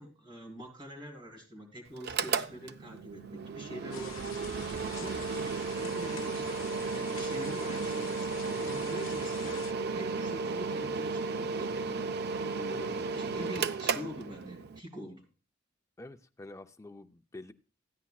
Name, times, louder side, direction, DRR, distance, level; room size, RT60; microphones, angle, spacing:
voice 1, 0.0-4.3 4.9-6.6 6.9-9.6 9.9-12.0 12.5-15.3, equal, 25° right, 2 dB, 2.9 m, -45 dB
Mechanical fan, 2.0-14.8, right 4 dB, 55° right, 0.5 m, -34 dB
sound 1, 3.9-9.7, left 9 dB, 90° left, 0.6 m, -47 dB
voice 2, 16.0-17.5, left 2 dB, 15° left, 8 dB, 0.4 m, -48 dB
14.5 x 10.0 x 2.3 m, 0.32 s
head